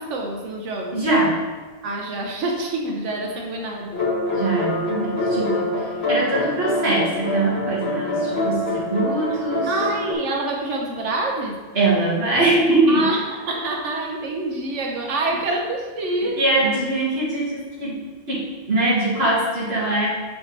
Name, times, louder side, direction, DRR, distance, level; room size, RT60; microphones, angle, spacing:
voice 1, 0.0-1.0 1.8-3.9 5.6-5.8 9.7-11.6 12.9-13.2 13.5-16.4, right 2 dB, 85° right, 0 dB, 1.2 m, -26 dB
voice 2, 0.9-1.4 4.3-9.7 11.7-13.1 16.4-18.0 18.3-20.1, right 2 dB, 60° right, -7 dB, 2.1 m, -22 dB
sound 1, 3.9-10.1, left 2 dB, 60° left, 1.4 m, -25 dB
6.0 x 4.8 x 4.0 m, 1.3 s
omnidirectional pair, 1.2 m